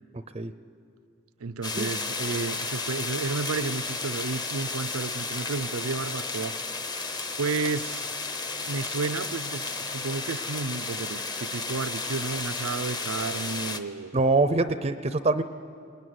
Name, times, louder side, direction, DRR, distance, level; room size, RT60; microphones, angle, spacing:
voice 1, 1.4-6.5 7.4-8.1 8.7-14.2, right 4 dB, 85° right, 16 dB, 0.6 m, -32 dB
sound 1, 1.6-13.8, left 3 dB, 20° left, 0.8 m, -33 dB
voice 2, 14.1-15.4, right 3 dB, 30° right, 11 dB, 0.6 m, -24 dB
20.5 x 20.5 x 9.5 m, 2.4 s
head